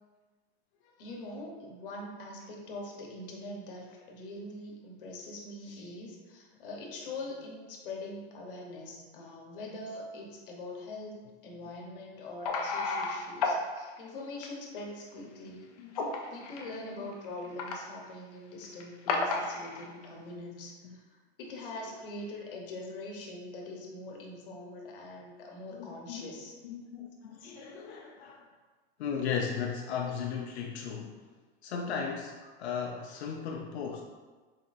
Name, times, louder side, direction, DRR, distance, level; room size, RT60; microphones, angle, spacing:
voice 1, 1.0-15.7 16.3-26.5, left 2 dB, 55° left, -1 dB, 1.0 m, -43 dB
sound 1, 12.5-13.5 13.8-14.0 14.4-14.5 16.0-16.7 17.1-17.7 18.6-18.8 19.1-20.1, left 4 dB, 40° left, 0.4 m, -31 dB
voice 2, 16.7-17.1 20.8-21.0 25.7-26.3 26.6-28.4 29.0-31.1 31.6-34.0, left 6 dB, 90° left, 1 dB, 0.6 m, -36 dB
4.2 x 4.1 x 2.5 m, 1.3 s
supercardioid pair, 175°, 32 cm